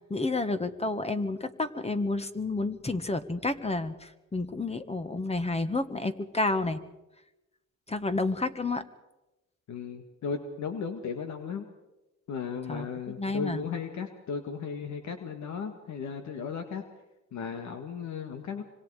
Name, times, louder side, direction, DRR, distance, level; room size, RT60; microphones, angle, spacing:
voice 1, 0.1-6.8 7.9-8.8 12.7-12.9 13.2-13.6, left 2 dB, 20° left, 10 dB, 1.5 m, -30 dB
voice 2, 9.7-11.7 12.3-16.8 17.3-18.6, left 6 dB, 70° left, 6 dB, 2.0 m, -35 dB
25.5 x 25.0 x 5.0 m, 1.0 s
cardioid pair, 90°, 30 cm